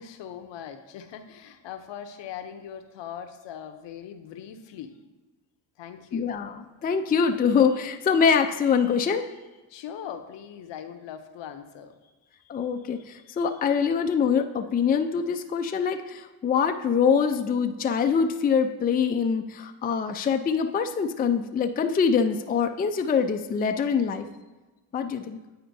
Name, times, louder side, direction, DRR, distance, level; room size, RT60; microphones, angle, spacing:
voice 1, 0.0-5.0 5.8-6.3 9.7-12.0 15.8-15.9, left 9 dB, 65° left, 7 dB, 0.8 m, -40 dB
voice 2, 6.1-9.3 12.5-24.3 24.9-25.4, left 6 dB, 20° left, 6 dB, 0.4 m, -24 dB
9.2 x 4.2 x 2.7 m, 1.2 s
supercardioid pair, 60°, 48 cm